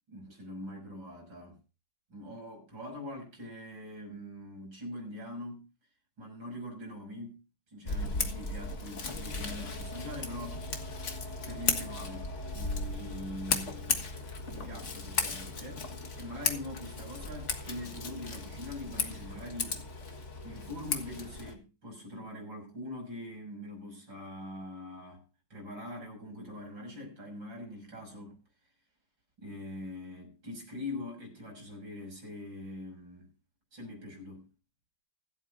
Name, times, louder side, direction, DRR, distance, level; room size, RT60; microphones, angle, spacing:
voice 1, 0.1-1.6 2.1-5.7 6.2-7.4 7.7-10.7 11.5-14.0 14.5-19.8 20.4-25.2 25.5-28.4 29.4-33.3 33.7-34.5, left 1 dB, 70° right, 7.2 m, -43 dB
Scissors, 7.8-21.5, left 3 dB, 40° left, 1.7 m, -36 dB
25.0 x 8.4 x 2.6 m
omnidirectional pair, 2.2 m